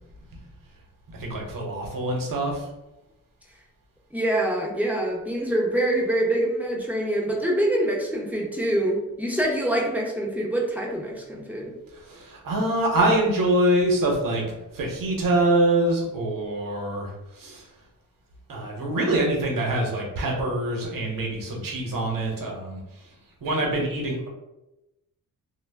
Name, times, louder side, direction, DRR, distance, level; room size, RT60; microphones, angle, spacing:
voice 1, 1.1-2.7 11.9-14.4 14.7-17.6 18.5-22.8 23.4-24.3, right 1 dB, 65° right, 0 dB, 0.9 m, -25 dB
voice 2, 4.1-11.7, right 1 dB, 5° right, -2 dB, 0.5 m, -25 dB
2.2 x 2.0 x 3.3 m, 0.96 s
cardioid pair, 90°, 36 cm